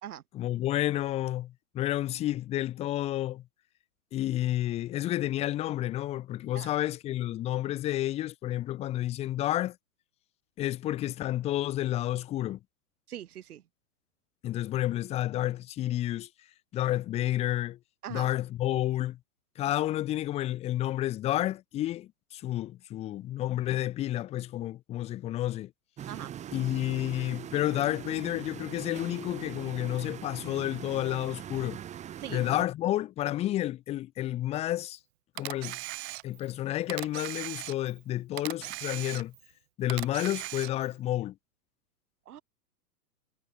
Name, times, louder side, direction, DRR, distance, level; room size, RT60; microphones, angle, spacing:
voice 1, 0.3-3.4 4.1-9.8 10.6-12.6 14.4-16.3 16.7-17.8 18.1-19.2 19.6-25.7 26.5-31.8 32.3-35.0 35.4-35.8 36.2-39.3 39.8-41.3, left 14 dB, 15° left, 0.6 m, -30 dB
voice 2, 13.1-13.6 18.0-18.3 26.1-26.3 32.2-32.4 42.3-42.4, right 11 dB, 70° right, 4.1 m, -41 dB
sound 1, 26.0-32.6, right 10 dB, 15° right, 1.1 m, -42 dB
Camera, 35.4-36.5 36.9-38.0 38.4-39.5 39.9-40.9, right 21 dB, 45° right, 1.5 m, -39 dB
hypercardioid pair, 135°, 46 cm